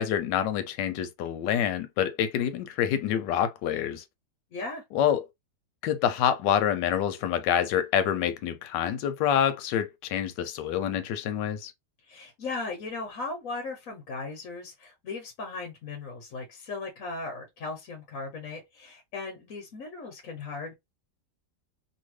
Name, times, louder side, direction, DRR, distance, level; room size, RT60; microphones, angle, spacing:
voice 1, 0.0-4.0 4.9-5.2 5.8-11.7, left 9 dB, 90° left, 1.2 m, -27 dB
voice 2, 4.5-4.8 12.0-20.7, left 3 dB, 55° left, 1.2 m, -37 dB
2.8 x 2.7 x 3.1 m
omnidirectional pair, 1.8 m